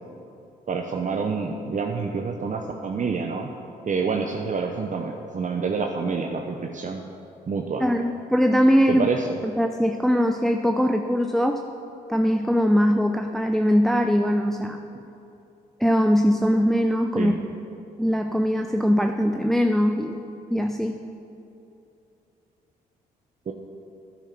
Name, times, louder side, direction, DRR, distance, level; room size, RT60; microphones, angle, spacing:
voice 1, 0.7-3.5 3.9-7.0 7.5-7.9 8.9-9.3 17.1-17.3 23.5-23.6, right 4 dB, 40° right, 3 dB, 0.8 m, -27 dB
voice 2, 7.8-9.1 9.4-11.6 12.1-14.8 15.8-17.3 18.0-20.2 20.5-21.0, equal, ahead, 6 dB, 0.5 m, -21 dB
9.1 x 9.0 x 6.0 m, 2.8 s
supercardioid pair, 60°, 19 cm